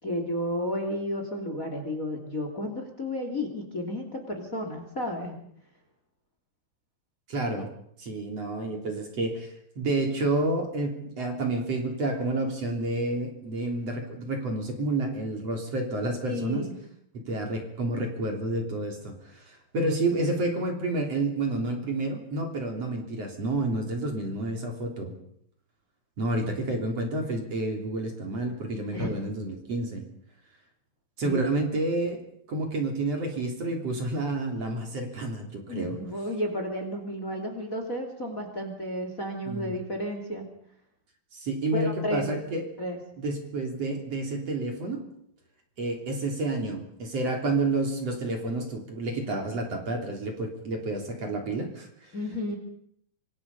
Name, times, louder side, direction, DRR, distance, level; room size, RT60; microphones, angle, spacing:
voice 1, 0.0-5.4 16.3-16.7 28.9-29.3 31.2-31.4 35.7-40.5 41.7-42.3 42.8-43.0 52.1-52.6, left 1 dB, 25° left, 4 dB, 3.2 m, -32 dB
voice 2, 7.3-7.7 8.0-16.7 17.1-25.2 26.2-30.0 31.2-32.2 32.5-36.0 39.5-39.7 41.3-42.7 43.2-45.1 45.8-52.2, right 2 dB, 45° right, 2 dB, 4.2 m, -29 dB
26.0 x 25.5 x 5.6 m, 0.71 s
omnidirectional pair, 4.3 m